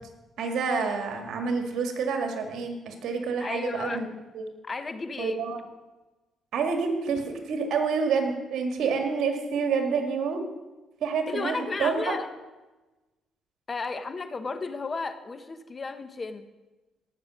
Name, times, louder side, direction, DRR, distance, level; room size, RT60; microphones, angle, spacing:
voice 1, 0.4-4.1 4.3-4.5 5.2-5.6 6.5-10.4 11.0-12.2, right 5 dB, 75° right, 4 dB, 2.1 m, -28 dB
voice 2, 3.4-4.1 4.6-5.4 11.3-12.3 13.7-16.5, left 4 dB, 30° left, 11 dB, 0.9 m, -33 dB
17.5 x 6.7 x 6.3 m, 1.1 s
cardioid pair, 90°, 0 cm